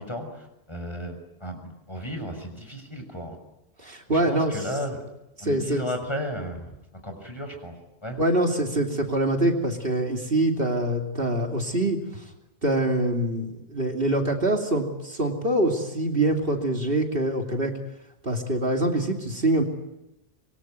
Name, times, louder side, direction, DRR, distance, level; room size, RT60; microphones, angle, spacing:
voice 1, 0.0-3.4 4.1-5.0 5.4-6.7 7.0-7.7 8.0-8.2, equal, 25° left, 5 dB, 6.2 m, -34 dB
voice 2, 3.8-4.6 5.4-5.8 8.2-12.2 12.6-17.7 18.2-19.6, right 1 dB, 65° right, 3 dB, 3.2 m, -24 dB
25.5 x 23.5 x 9.5 m, 0.92 s
omnidirectional pair, 1.0 m